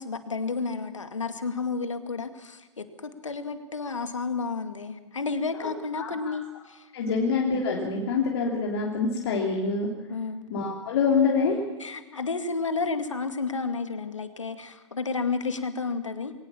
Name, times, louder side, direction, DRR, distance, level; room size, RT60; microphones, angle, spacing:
voice 1, 0.0-7.1 10.1-10.4 11.8-16.3, left 4 dB, 80° left, 9 dB, 2.3 m, -31 dB
voice 2, 5.9-6.3 6.9-9.9 10.5-11.6, left 5 dB, 55° left, 0 dB, 3.3 m, -26 dB
23.0 x 18.5 x 7.2 m, 1.1 s
figure-of-eight pair, 110°, 16 cm